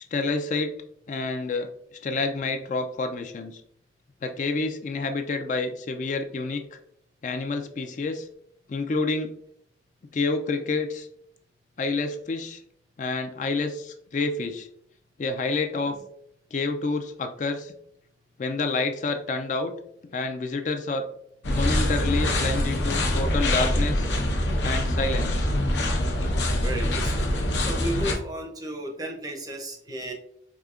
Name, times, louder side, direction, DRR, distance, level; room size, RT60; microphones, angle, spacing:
voice 1, 0.1-0.7 1.1-3.6 4.2-6.8 7.2-8.3 8.7-9.3 10.1-11.1 11.8-12.6 13.0-14.7 15.2-15.9 16.5-17.7 18.4-19.7 20.1-21.1 21.4-24.1 24.6-25.5, left 3 dB, 45° left, 6 dB, 0.3 m, -28 dB
sound 1, 21.4-28.1, left 1 dB, 85° left, 0.8 m, -24 dB
voice 2, 26.6-27.3 27.6-30.1, right 1 dB, 20° right, 2 dB, 0.5 m, -33 dB
4.8 x 2.7 x 2.4 m, 0.70 s
head